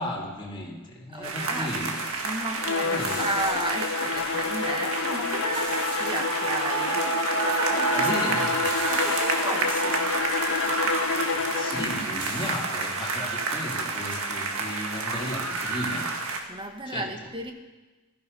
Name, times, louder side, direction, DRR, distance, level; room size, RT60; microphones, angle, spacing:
voice 1, 0.0-2.0 2.8-3.3 7.9-8.5 11.3-16.1 16.9-17.1, left 1 dB, 25° left, -3 dB, 3.0 m, -34 dB
voice 2, 1.1-1.8 2.2-8.3 8.9-10.2 16.5-17.5, right 2 dB, 25° right, 4 dB, 1.5 m, -34 dB
sound 1, 1.2-16.4, right 4 dB, 75° right, 1.8 m, -29 dB
Bowed string instrument, 2.5-12.0, left 5 dB, 65° left, 0.5 m, -29 dB
sound 2, 3.0-4.2 5.5-6.7 7.0-7.1 8.6-9.9 12.2-13.3, right 2 dB, 55° right, 4.1 m, -40 dB
16.0 x 14.0 x 5.5 m, 1.2 s
head